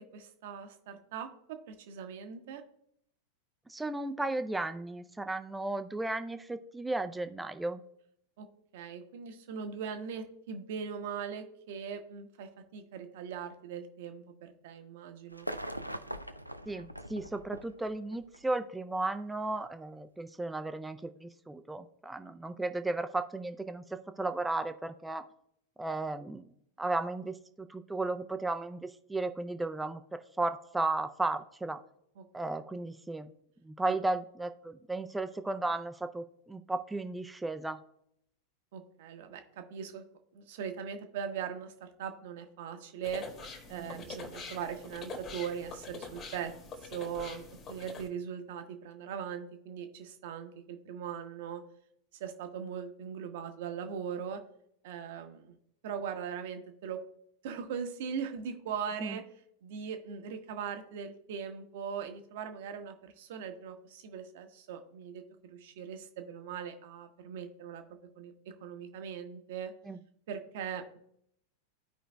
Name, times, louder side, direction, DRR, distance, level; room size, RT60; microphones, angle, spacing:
voice 1, 0.0-2.6 8.4-8.5 8.7-15.5 32.2-32.3 33.9-34.0 38.7-40.0 40.3-43.2 43.7-46.5 46.8-51.6 52.2-54.4 54.8-55.5 55.8-57.0 57.4-59.2 59.6-68.3 68.6-69.7 70.3-71.0, right 7 dB, 55° right, 6 dB, 0.9 m, -40 dB
voice 2, 3.7-7.8 16.7-25.2 25.8-26.5 26.8-30.0 30.4-31.8 32.3-33.3 33.6-37.8 43.7-44.0 59.0-59.2 69.8-70.0, right 2 dB, 5° right, 10 dB, 0.5 m, -35 dB
sound 1, 15.3-18.4 19.5-19.6, equal, 90° right, 0.4 m, -41 dB
sound 2, 43.0-48.1, left 3 dB, 30° left, 1.6 m, -45 dB
14.5 x 5.0 x 2.2 m, 0.73 s
figure-of-eight pair, 90°, 0 cm